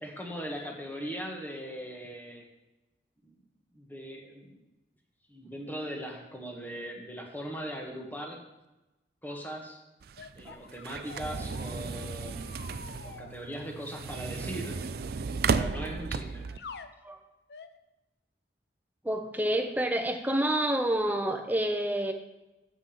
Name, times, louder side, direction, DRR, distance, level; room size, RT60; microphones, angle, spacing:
voice 1, 0.0-2.5 3.2-3.3 3.7-4.5 5.3-8.4 9.2-9.8 10.3-14.8 15.5-16.4, equal, 10° left, 0 dB, 1.5 m, -40 dB
sound 1, 10.0-16.6, right 4 dB, 55° right, 0.4 m, -34 dB
sound 2, 10.2-13.3 14.6-14.9 16.5-16.9 17.5-17.8, left 5 dB, 60° left, 0.6 m, -47 dB
voice 2, 19.0-22.1, right 1 dB, 10° right, 5 dB, 0.8 m, -28 dB
7.5 x 6.0 x 7.4 m, 1.0 s
head